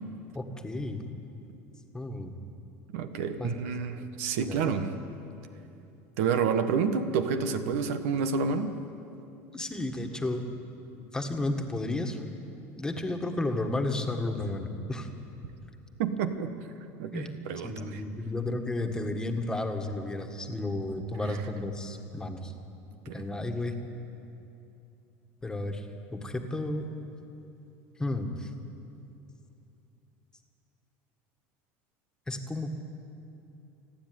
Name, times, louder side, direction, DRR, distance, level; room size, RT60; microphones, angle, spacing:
voice 1, 0.3-1.0 1.9-2.3 3.4-3.5 4.4-4.7 9.5-10.4 11.1-12.2 12.8-15.1 17.1-17.3 17.6-22.5 23.1-23.8 25.4-25.9 26.1-26.8 28.0-28.5 32.3-32.7, left 2 dB, 10° left, 4 dB, 1.7 m, -32 dB
voice 2, 2.9-5.0 6.2-8.8 16.0-16.5 17.0-18.0 21.2-21.4 23.0-23.3, right 6 dB, 80° right, 9 dB, 1.3 m, -29 dB
28.5 x 10.0 x 9.5 m, 2.8 s
supercardioid pair, 125°, 7 cm